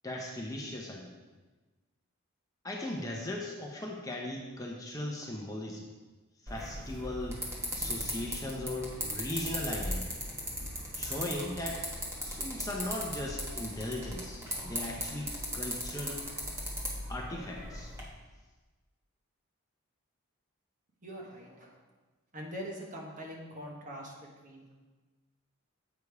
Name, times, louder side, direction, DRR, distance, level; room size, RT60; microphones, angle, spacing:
voice 1, 0.0-1.1 2.6-5.9 6.4-7.4 7.7-10.2 10.9-11.8 12.2-16.2 17.1-17.9, left 1 dB, 15° left, -1 dB, 0.7 m, -38 dB
sound 1, 6.5-18.0, equal, 10° right, 1.1 m, -38 dB
voice 2, 21.0-21.8 22.3-24.7, equal, 35° right, -1 dB, 1.2 m, -43 dB
8.0 x 5.1 x 4.7 m, 1.3 s
head